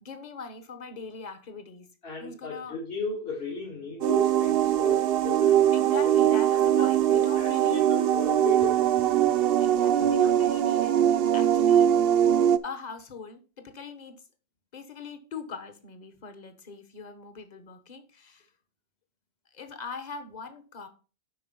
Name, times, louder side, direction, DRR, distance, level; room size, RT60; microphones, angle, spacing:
voice 1, 0.0-1.9 2.2-2.8 5.7-7.8 9.6-12.2 12.6-14.2 14.7-18.5 19.5-20.9, left 5 dB, 45° left, 1.2 m, -41 dB
voice 2, 2.0-5.7 6.3-6.4 6.8-9.4 10.0-10.1, left 2 dB, 65° left, 2.1 m, -36 dB
sound 1, 4.0-12.6, right 10 dB, 65° right, 0.8 m, -22 dB
7.7 x 5.7 x 5.4 m
omnidirectional pair, 1.1 m